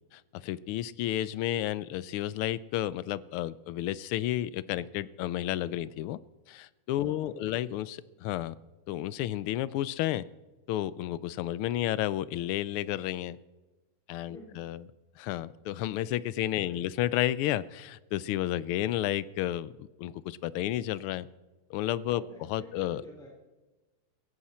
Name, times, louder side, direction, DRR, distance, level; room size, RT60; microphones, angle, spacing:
voice 1, 0.1-6.2 6.5-8.5 8.9-10.3 10.7-13.4 14.1-14.8 15.2-21.3 21.7-22.2 22.5-23.0, left 13 dB, 85° left, 18 dB, 1.5 m, -31 dB
voice 2, 7.0-7.5 14.3-14.5 16.5-16.8 22.1-23.3, left 1 dB, ahead, -2 dB, 3.2 m, -49 dB
16.5 x 15.0 x 4.3 m, 1.2 s
omnidirectional pair, 2.4 m